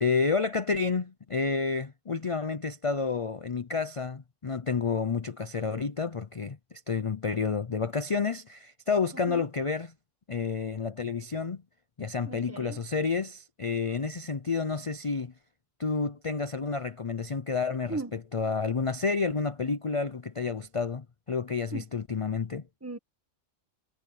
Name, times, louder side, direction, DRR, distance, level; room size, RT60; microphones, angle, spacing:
voice 1, 0.0-9.9 10.3-11.6 12.0-15.3 15.8-22.6, left 5 dB, 35° left, 0.6 m, -30 dB
voice 2, 12.2-12.8 17.9-18.1 21.7-21.8 22.8-23.0, right 2 dB, 10° right, 1.6 m, -37 dB
omnidirectional pair, 1.3 m